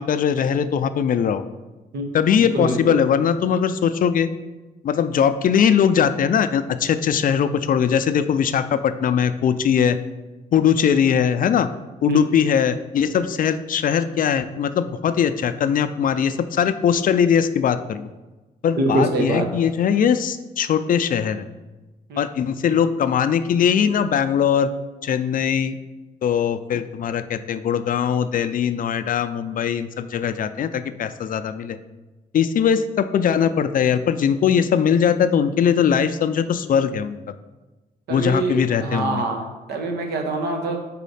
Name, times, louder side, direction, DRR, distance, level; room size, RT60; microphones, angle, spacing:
voice 1, 0.0-1.4 2.1-4.3 4.8-10.0 10.5-11.7 12.0-18.1 18.6-21.5 22.2-24.7 25.0-25.8 26.2-31.8 32.3-37.2 38.1-39.2, left 8 dB, 55° left, 11 dB, 0.4 m, -20 dB
voice 2, 2.4-3.0 12.1-12.2 18.8-19.4 22.1-22.2 38.1-40.8, right 2 dB, 80° right, 3 dB, 0.9 m, -24 dB
4.1 x 4.1 x 5.5 m, 1.2 s
cardioid pair, 75°, 17 cm